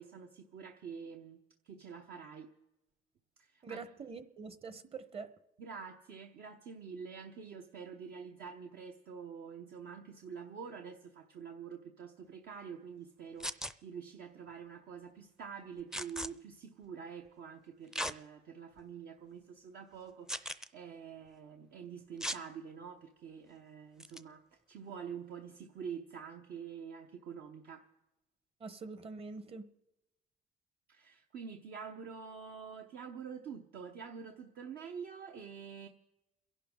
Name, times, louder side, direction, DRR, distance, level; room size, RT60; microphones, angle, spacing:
voice 1, 0.0-1.4 1.6-2.5 3.4-3.8 5.6-27.9 30.9-35.9, right 6 dB, 65° right, 3 dB, 1.0 m, -47 dB
voice 2, 3.6-5.3 28.6-29.7, right 4 dB, 35° right, 12 dB, 1.1 m, -45 dB
sound 1, 13.4-13.7 15.9-16.3 17.9-18.2 18.8-18.9 20.3-20.7 22.2-22.4 24.0-24.2, equal, 5° right, 0.5 m, -37 dB
29.5 x 11.0 x 3.8 m, 0.96 s
cardioid pair, 110°, 17 cm